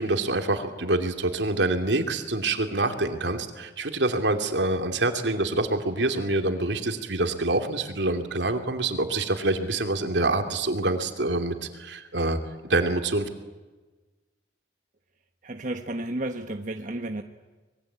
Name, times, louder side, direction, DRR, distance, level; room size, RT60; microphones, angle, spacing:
voice 1, 0.0-12.4 12.6-13.2, right 2 dB, 75° right, 6 dB, 2.8 m, -26 dB
voice 2, 15.4-17.2, right 1 dB, 45° right, 5 dB, 1.3 m, -32 dB
25.5 x 22.0 x 8.8 m, 1.2 s
head